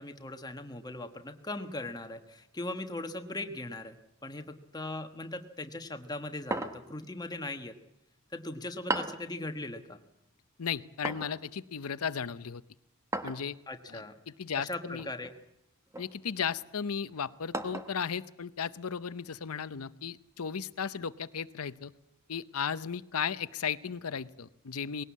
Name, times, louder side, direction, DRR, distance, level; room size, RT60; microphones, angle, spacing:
voice 1, 0.0-4.0 4.2-7.7 8.3-10.0 13.7-14.2 14.6-15.3, left 2 dB, 20° left, 7 dB, 1.3 m, -39 dB
sound 1, 6.5-7.0 8.9-9.3 11.0-11.4 13.1-13.5 15.0-15.3 15.9-16.1 17.5-18.0, right 2 dB, 15° right, 1.1 m, -35 dB
voice 2, 10.6-12.6 13.2-13.6 13.9-15.1 16.0-21.9 22.3-25.0, left 7 dB, 90° left, 15 dB, 0.7 m, -35 dB
20.5 x 17.5 x 8.5 m, 0.82 s
head